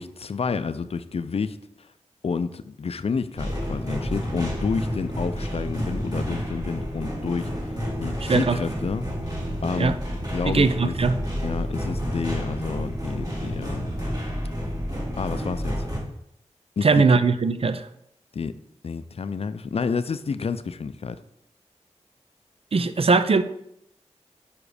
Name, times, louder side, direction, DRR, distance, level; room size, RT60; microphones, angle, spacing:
voice 1, 0.0-1.6 2.2-9.0 9.6-10.0 10.3-11.0 11.4-13.9 15.2-15.9 16.8-17.2 18.3-18.5 18.8-21.2, left 5 dB, 55° left, 0.4 m, -29 dB
sound 1, 3.4-16.0, equal, 30° right, 2.0 m, -30 dB
voice 2, 10.5-11.2 16.8-17.8 22.7-23.4, right 4 dB, 55° right, 0.4 m, -20 dB
5.1 x 5.0 x 4.9 m
wide cardioid pair, 75°, 12 cm